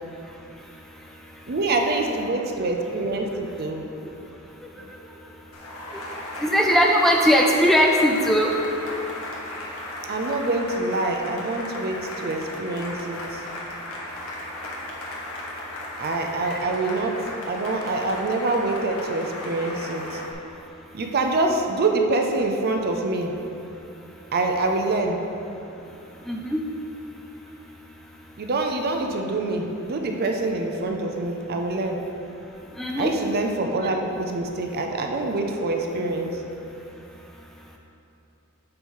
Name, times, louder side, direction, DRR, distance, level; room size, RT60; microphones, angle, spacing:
voice 1, 1.5-3.9 4.8-4.9 10.1-13.4 16.0-17.2 17.5-20.2 20.9-23.3 24.3-25.2 28.4-32.0 33.0-36.4, right 2 dB, 45° right, 3 dB, 0.5 m, -25 dB
Cheering / Applause, 5.5-20.3, left 1 dB, 70° left, 1.1 m, -35 dB
voice 2, 6.4-8.5 16.5-16.6 26.3-26.6 32.8-33.1, equal, ahead, -1 dB, 0.4 m, -19 dB
7.8 x 3.1 x 5.5 m, 2.8 s
head